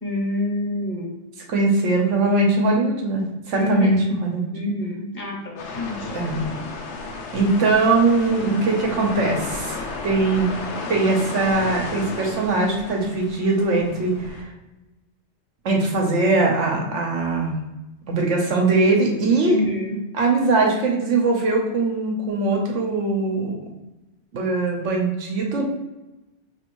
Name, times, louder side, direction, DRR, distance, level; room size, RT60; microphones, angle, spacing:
voice 1, 0.0-1.1 3.6-4.1 4.5-6.1 19.4-20.0, left 1 dB, 55° left, -2 dB, 1.3 m, -27 dB
voice 2, 1.5-4.5 6.1-6.4 7.3-10.5 10.9-14.5 15.6-17.5 18.1-19.5 20.1-23.6 24.3-25.6, right 3 dB, 80° right, -1 dB, 1.2 m, -21 dB
sound 1, 5.6-14.4, left 3 dB, 70° left, 0.9 m, -33 dB
5.2 x 3.0 x 3.0 m, 1.0 s
omnidirectional pair, 1.2 m